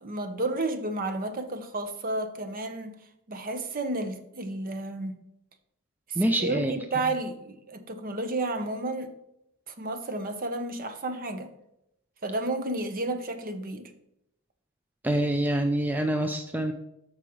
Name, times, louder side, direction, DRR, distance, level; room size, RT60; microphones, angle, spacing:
voice 1, 0.0-2.9 3.3-5.2 6.1-9.1 9.7-11.5 12.2-13.9, right 2 dB, 40° right, 0.8 m, -32 dB
voice 2, 6.2-6.7 15.0-16.7, right 1 dB, 10° right, 0.4 m, -26 dB
13.0 x 4.8 x 3.1 m
head